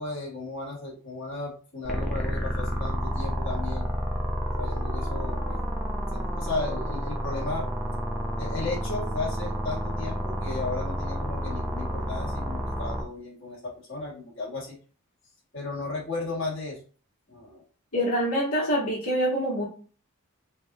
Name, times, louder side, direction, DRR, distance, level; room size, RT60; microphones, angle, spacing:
voice 1, 0.0-3.9 4.6-5.6 6.1-7.7 8.4-14.7 15.5-16.8 17.3-17.6, left 3 dB, 55° left, -6 dB, 1.7 m, -35 dB
sound 1, 1.8-13.0, equal, ahead, 0.7 m, -30 dB
voice 2, 17.9-19.6, equal, 85° left, -4 dB, 1.7 m, -25 dB
5.2 x 2.6 x 2.9 m, 0.40 s
head